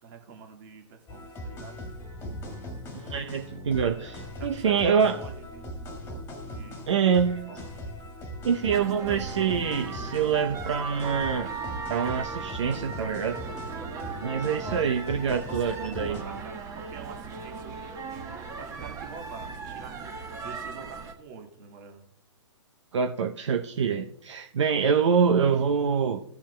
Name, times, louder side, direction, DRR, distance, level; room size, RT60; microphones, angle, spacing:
voice 1, 0.0-1.8 4.4-5.7 6.4-7.1 7.5-7.7 15.3-17.8 18.6-22.1, right 5 dB, 40° right, 3 dB, 1.9 m, -45 dB
sound 1, 1.1-16.2, left 1 dB, 15° left, 1.8 m, -40 dB
voice 2, 2.9-5.2 6.9-7.5 8.4-11.5 11.9-13.4 14.2-16.2 22.9-26.2, right 6 dB, 70° right, 5 dB, 0.7 m, -25 dB
sound 2, 8.7-21.1, right 5 dB, 20° right, 1.2 m, -37 dB
15.5 x 7.1 x 2.2 m, 0.73 s
hypercardioid pair, 130°, 16 cm